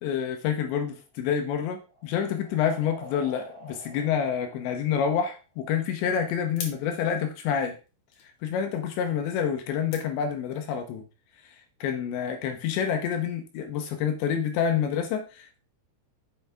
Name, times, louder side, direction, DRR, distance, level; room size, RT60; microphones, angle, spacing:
voice 1, 0.0-7.8 8.4-11.0 11.4-11.6 11.8-15.6, left 8 dB, 80° left, 6 dB, 2.7 m, -28 dB
sound 1, 1.0-5.6, equal, 20° right, 2.3 m, -49 dB
sound 2, 5.2-10.9, left 5 dB, 65° left, 3.0 m, -47 dB
8.0 x 6.0 x 3.4 m, 0.32 s
omnidirectional pair, 5.9 m